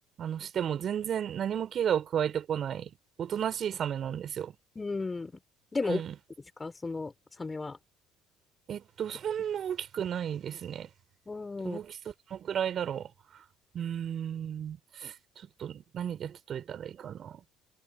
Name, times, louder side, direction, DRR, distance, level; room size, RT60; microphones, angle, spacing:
voice 1, 0.2-2.9 3.2-4.6 5.9-6.1 8.7-10.9 11.6-12.0 12.3-13.1 13.7-15.1 15.6-17.4, right 9 dB, 50° right, 4.3 m, -33 dB
voice 2, 4.7-5.3 5.7-6.0 6.6-7.1 7.4-7.8 11.3-11.8, left 3 dB, 20° left, 4.5 m, -33 dB
hypercardioid pair, 60°, 0 cm